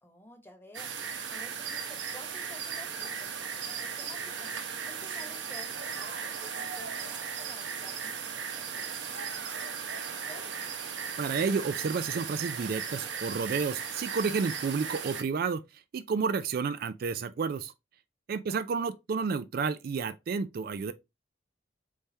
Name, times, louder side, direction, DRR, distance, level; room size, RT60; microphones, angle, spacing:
voice 1, 0.0-3.1 3.3-10.5 18.5-18.6, left 1 dB, 15° left, 1.1 m, -53 dB
sound 1, 0.7-15.2, right 6 dB, 85° right, 0.8 m, -37 dB
voice 2, 11.2-17.7 18.3-20.9, right 5 dB, 55° right, 0.4 m, -31 dB
4.2 x 3.4 x 3.3 m
head